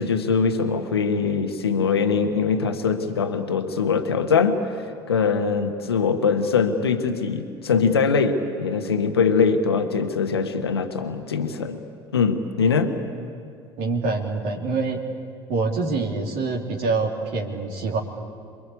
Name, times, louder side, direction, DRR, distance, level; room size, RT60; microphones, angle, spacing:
voice 1, 0.0-11.8 12.1-13.0, left 5 dB, 80° left, 6 dB, 1.4 m, -22 dB
voice 2, 13.8-15.0 15.5-18.0, right 3 dB, 60° right, 0 dB, 3.0 m, -25 dB
27.5 x 22.5 x 8.6 m, 2.3 s
figure-of-eight pair, 65°, 13 cm